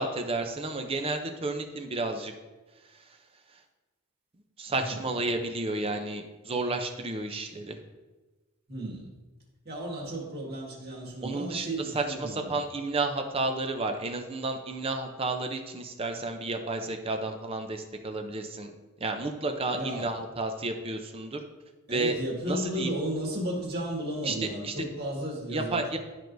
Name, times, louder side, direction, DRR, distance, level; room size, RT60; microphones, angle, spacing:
voice 1, 0.0-2.3 2.9-3.2 4.6-7.8 11.2-18.7 19.0-21.4 21.9-22.2 22.5-22.9 24.2-24.4 24.6-24.7 25.5-26.0, right 2 dB, 25° right, 5 dB, 0.6 m, -31 dB
voice 2, 8.7-9.1 9.6-12.5 19.7-20.1 21.9-25.9, right 1 dB, 45° right, -2 dB, 1.7 m, -34 dB
12.0 x 4.6 x 2.6 m, 1.2 s
head